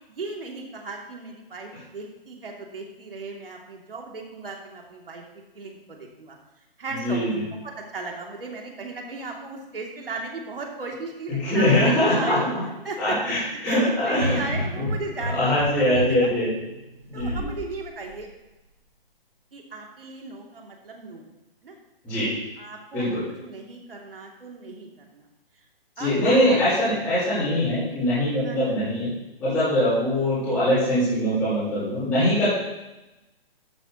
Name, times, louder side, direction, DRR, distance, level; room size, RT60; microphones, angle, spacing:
voice 1, 0.1-6.4 6.8-12.4 12.8-13.2 13.6-16.3 17.1-18.3 19.5-21.3 21.6-21.8 22.6-25.3 26.0-26.6 28.4-28.6, right 3 dB, 65° right, 0 dB, 2.6 m, -36 dB
voice 2, 6.9-7.4 11.3-12.6 13.0-13.4 13.6-14.4 14.7-14.9 15.3-16.5 17.1-17.5 22.0-22.3 22.9-23.2 26.0-29.1 29.4-32.5, left 1 dB, 5° left, -17 dB, 4.5 m, -22 dB
sound 1, 14.1-17.6 18.0-18.2, left 1 dB, 15° right, 0.5 m, -31 dB
12.0 x 12.0 x 2.9 m, 1.0 s
hypercardioid pair, 180°, 30 cm